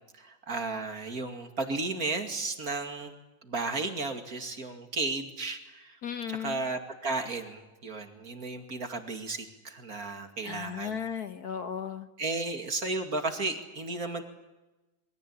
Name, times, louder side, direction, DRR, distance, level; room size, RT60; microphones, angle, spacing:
voice 1, 0.1-3.1 3.4-6.0 6.3-10.9 12.2-14.2, right 3 dB, 50° right, 6 dB, 2.8 m, -34 dB
voice 2, 6.0-6.6 10.4-12.1, left 8 dB, 55° left, 9 dB, 1.5 m, -35 dB
27.0 x 22.5 x 8.8 m, 1.1 s
omnidirectional pair, 2.1 m